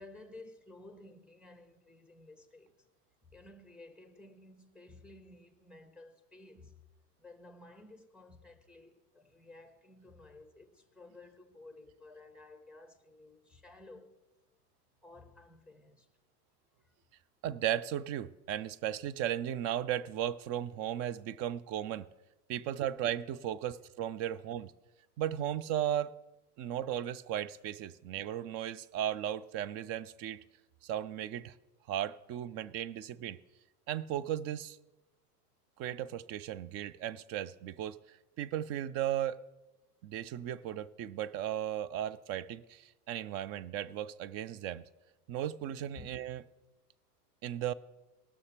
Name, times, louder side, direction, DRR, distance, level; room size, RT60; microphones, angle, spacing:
voice 1, 0.0-2.7 3.3-6.7 7.2-14.1 15.0-16.1 26.6-26.7 46.0-46.1, left 2 dB, ahead, 1.1 m, -54 dB
voice 2, 17.4-22.1 22.5-24.7 25.2-26.1 26.6-30.4 30.8-31.6 31.9-33.4 33.9-34.8 35.8-39.4 40.0-44.8 45.3-46.4 47.4-47.7, right 11 dB, 35° right, 0.4 m, -36 dB
19.0 x 6.5 x 4.3 m
hypercardioid pair, 110°, 47 cm